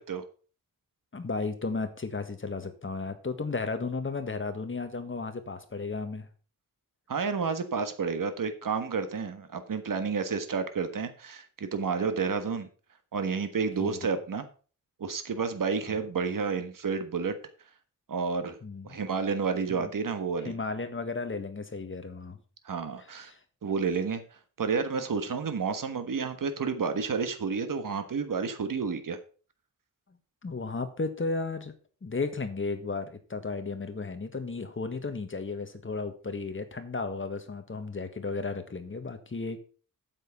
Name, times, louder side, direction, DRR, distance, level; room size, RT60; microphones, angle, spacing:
voice 1, 1.1-6.3 13.8-14.0 15.9-16.0 18.6-19.0 19.7-19.9 20.4-22.4 23.2-23.4 30.4-31.7 32.0-39.6, left 3 dB, 35° left, 8 dB, 1.7 m, -34 dB
voice 2, 7.1-12.7 13.1-14.5 15.0-17.4 18.1-18.6 18.8-20.5 22.6-23.3 23.6-24.2 24.6-29.2, right 5 dB, 75° right, 9 dB, 1.5 m, -30 dB
9.0 x 7.5 x 5.9 m, 0.39 s
wide cardioid pair, 115°, 33 cm